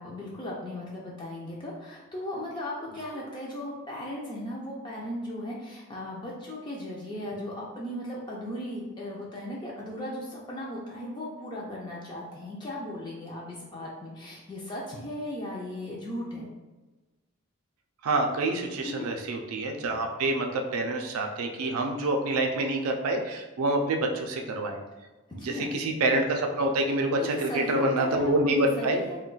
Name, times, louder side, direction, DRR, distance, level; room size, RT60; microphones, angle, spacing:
voice 1, 0.0-16.5 18.8-19.1 25.4-25.7 27.2-29.2, left 1 dB, 20° left, -4 dB, 0.3 m, -37 dB
voice 2, 18.0-24.8 25.3-29.0, right 2 dB, 90° right, 3 dB, 0.4 m, -27 dB
2.3 x 2.2 x 3.8 m, 1.2 s
head